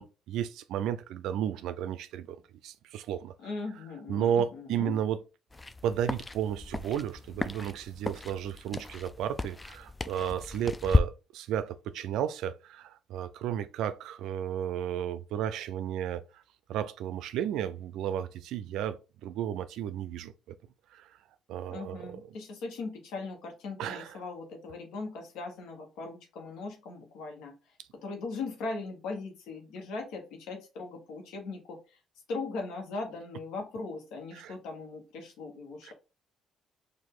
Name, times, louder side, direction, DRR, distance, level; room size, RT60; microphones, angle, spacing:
voice 1, 0.0-3.3 4.1-5.2 5.8-16.4 16.7-20.6 20.9-21.1 21.5-22.2 23.8-24.2 34.3-34.5 35.8-35.9, right 9 dB, 85° right, 0.4 m, -33 dB
voice 2, 3.4-4.9 21.7-27.6 27.9-32.0 32.3-35.9, left 3 dB, 85° left, 1.2 m, -39 dB
sound 1, 5.5-11.0, left 3 dB, 20° left, 0.4 m, -33 dB
4.6 x 2.6 x 3.7 m
cardioid pair, 90°, 0 cm